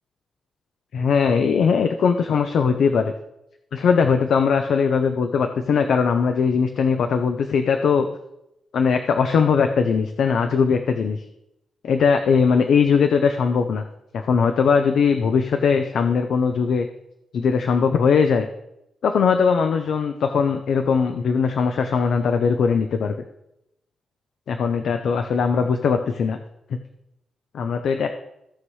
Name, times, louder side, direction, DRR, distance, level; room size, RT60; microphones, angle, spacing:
voice 1, 0.9-3.1 3.7-8.1 8.7-11.2 11.8-13.8 14.1-16.9 17.3-18.5 19.0-23.1 24.5-26.4 27.5-28.1, left 6 dB, 70° left, 6 dB, 0.6 m, -20 dB
16.0 x 5.5 x 3.2 m, 0.84 s
cardioid pair, 125°, 0 cm